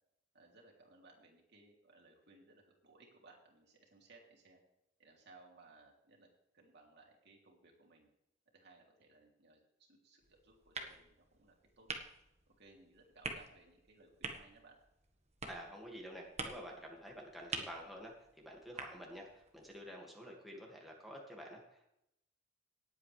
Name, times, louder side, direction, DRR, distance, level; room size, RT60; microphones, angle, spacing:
voice 1, 0.3-4.6 5.0-8.1 8.5-11.9 12.6-14.8, right 3 dB, 65° right, 0 dB, 3.0 m, -63 dB
sound 1, 10.2-19.8, right 4 dB, 35° right, 1.4 m, -48 dB
voice 2, 15.5-21.9, equal, ahead, -2 dB, 2.1 m, -50 dB
18.5 x 8.6 x 3.3 m, 0.81 s
head